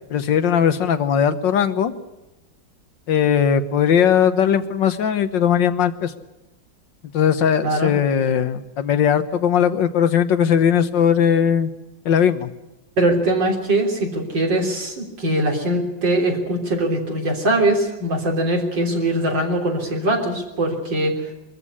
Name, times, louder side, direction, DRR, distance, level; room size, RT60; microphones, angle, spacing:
voice 1, 0.1-1.9 3.1-6.1 7.1-11.7 12.1-12.5, left 8 dB, 80° left, 11 dB, 1.9 m, -18 dB
voice 2, 13.0-21.1, right 1 dB, 80° right, 0 dB, 4.2 m, -21 dB
23.0 x 14.0 x 9.8 m, 0.98 s
omnidirectional pair, 2.0 m